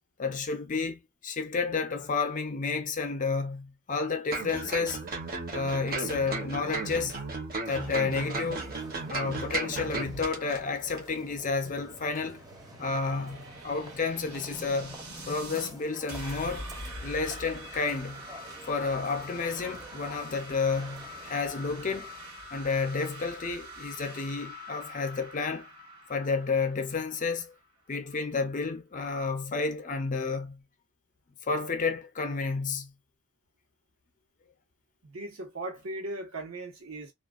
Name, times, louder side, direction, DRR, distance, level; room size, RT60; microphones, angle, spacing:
voice 1, 0.2-5.1 5.5-7.2 7.6-8.7 9.1-12.4 12.8-16.7 17.0-18.3 18.6-22.1 22.5-25.7 26.1-27.5 27.9-30.6 31.5-32.9, left 4 dB, 35° left, 0.5 m, -31 dB
sound 1, 4.3-10.6 10.9-11.0, right 3 dB, 45° right, 0.9 m, -35 dB
sound 2, 7.6-22.5, right 2 dB, 15° right, 0.6 m, -50 dB
sound 3, 11.4-15.7 16.1-27.7, equal, 85° right, 1.3 m, -44 dB
voice 2, 35.0-37.1, right 2 dB, 70° right, 1.0 m, -38 dB
2.3 x 2.2 x 2.3 m
head